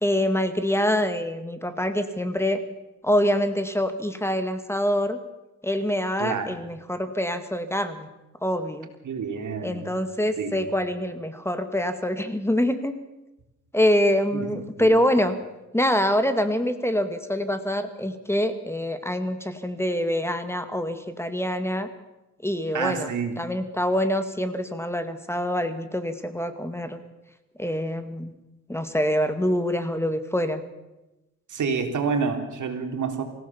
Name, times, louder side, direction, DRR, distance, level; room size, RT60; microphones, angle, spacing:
voice 1, 0.0-2.6 3.0-5.2 5.6-8.1 8.4-8.9 9.6-13.0 13.7-15.4 15.7-21.9 22.4-23.1 23.4-27.0 27.6-28.3 28.7-30.6, equal, 10° left, 9 dB, 2.0 m, -25 dB
voice 2, 6.2-6.5 9.0-10.0 10.4-10.7 14.3-14.5 14.8-14.9 22.7-23.4 31.5-33.2, right 5 dB, 80° right, 5 dB, 3.3 m, -28 dB
25.0 x 16.0 x 7.1 m, 0.99 s
cardioid pair, 90°, 30 cm